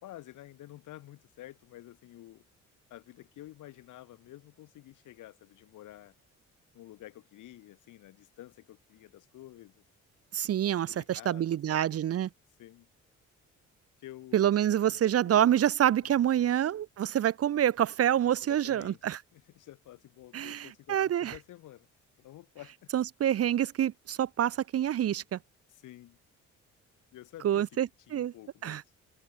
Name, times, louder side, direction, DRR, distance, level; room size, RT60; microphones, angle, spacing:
voice 1, 0.0-2.5 2.9-6.2 6.7-9.8 10.9-12.0 12.6-12.9 14.0-14.5 14.9-15.6 16.0-16.5 18.4-19.0 19.3-21.9 22.2-22.9 25.7-26.2 27.1-27.7 28.1-28.9, left 14 dB, 80° left, 2.4 m, -50 dB
voice 2, 10.3-12.3 14.3-19.2 20.3-21.3 22.9-25.4 27.4-28.3 28.6-28.8, right 10 dB, 50° right, 0.8 m, -27 dB
cardioid pair, 90°, 30 cm